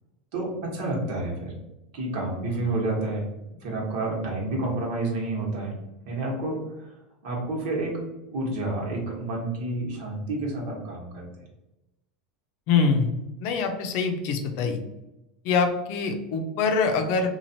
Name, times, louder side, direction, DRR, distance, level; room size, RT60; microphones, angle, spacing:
voice 1, 0.3-1.5 1.9-3.3 3.6-5.8 6.0-6.9 7.2-8.0 8.3-11.4, right 2 dB, 65° right, -1 dB, 1.2 m, -29 dB
voice 2, 12.7-13.1 13.4-14.8 15.4-17.3, left 5 dB, 60° left, 5 dB, 0.6 m, -24 dB
3.1 x 2.4 x 2.7 m, 0.92 s
supercardioid pair, 110°, 4 cm